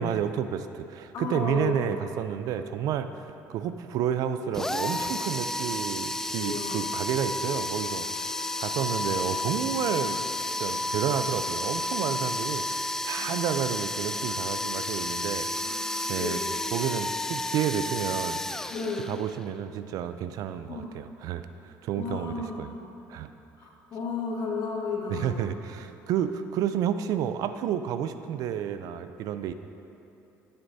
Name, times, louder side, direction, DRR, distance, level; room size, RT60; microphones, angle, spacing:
voice 1, 0.0-10.2 10.6-15.8 16.1-16.4 16.7-18.7 19.0-22.7 23.1-23.3 25.1-29.5, right 9 dB, 65° right, 10 dB, 0.4 m, -31 dB
voice 2, 1.1-2.0 6.4-6.8 11.1-11.4 13.2-13.5 14.7-14.8 15.5-16.5 18.7-19.1 20.7-20.9 21.9-23.0 23.6-25.4, left 4 dB, 60° left, -2 dB, 1.7 m, -34 dB
sound 1, 4.5-19.4, left 1 dB, 5° left, 0.3 m, -31 dB
13.5 x 7.9 x 2.7 m, 2.9 s
supercardioid pair, 95°, 7 cm